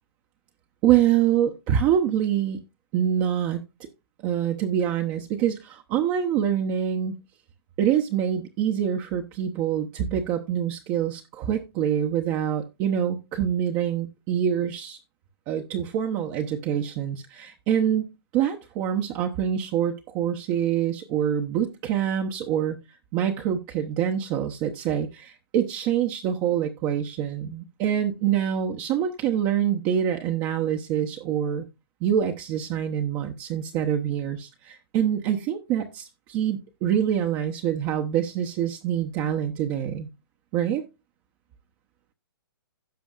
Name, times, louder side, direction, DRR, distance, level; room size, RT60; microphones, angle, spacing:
voice 1, 0.8-2.6 2.9-3.6 4.2-7.1 7.8-15.0 15.5-22.8 23.1-31.7 32.0-40.1 40.5-40.8, right 9 dB, 30° right, 3 dB, 0.9 m, -25 dB
16.5 x 6.1 x 2.4 m, 0.25 s
hypercardioid pair, 140°, 13 cm